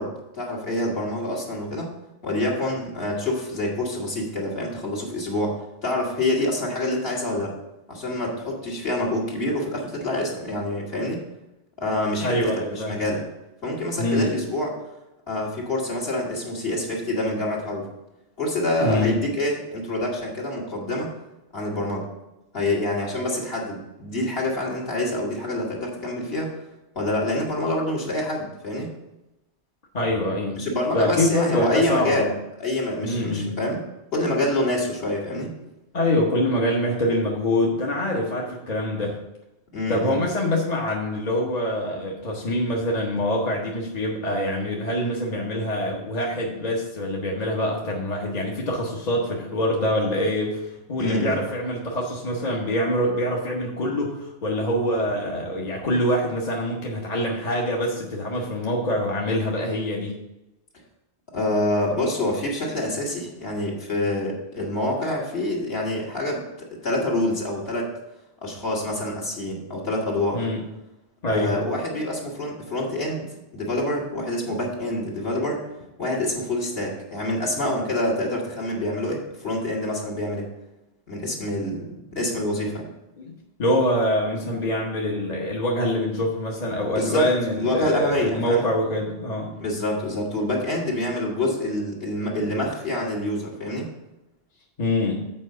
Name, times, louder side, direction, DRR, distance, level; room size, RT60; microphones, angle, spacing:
voice 1, 0.0-1.9 2.2-7.5 7.9-11.2 11.8-13.2 13.6-14.7 15.3-17.9 18.4-21.1 21.5-22.1 22.5-26.5 26.9-28.9 30.6-32.3 32.6-33.8 34.1-35.5 39.7-40.1 51.0-51.4 61.3-67.9 68.4-70.5 71.3-75.6 76.0-80.5 81.1-82.9 86.9-87.3 87.5-88.6 89.6-93.9, left 1 dB, 55° left, -3 dB, 2.2 m, -26 dB
voice 2, 12.2-13.0 14.0-14.3 18.8-19.2 29.9-32.3 33.0-33.6 35.9-39.2 39.9-60.2 70.3-70.6 71.2-71.6 83.2-83.3 83.6-89.5 94.8-95.3, left 1 dB, 35° left, -2 dB, 1.1 m, -25 dB
7.6 x 4.8 x 6.5 m, 0.94 s
omnidirectional pair, 1.2 m